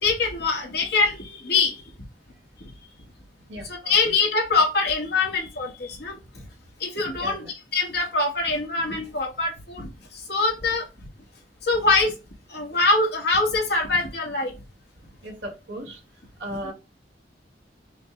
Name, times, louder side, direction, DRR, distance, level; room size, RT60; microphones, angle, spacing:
voice 1, 0.0-1.8 2.6-2.7 3.6-6.2 6.8-10.9 11.6-12.2 12.5-14.5 16.5-16.6, left 3 dB, 60° left, 0 dB, 1.4 m, -24 dB
voice 2, 3.5-3.9 6.4-6.5 7.2-7.4 15.2-16.0 16.4-16.7, right 1 dB, 75° right, 2 dB, 1.6 m, -36 dB
5.0 x 2.2 x 3.6 m, 0.27 s
head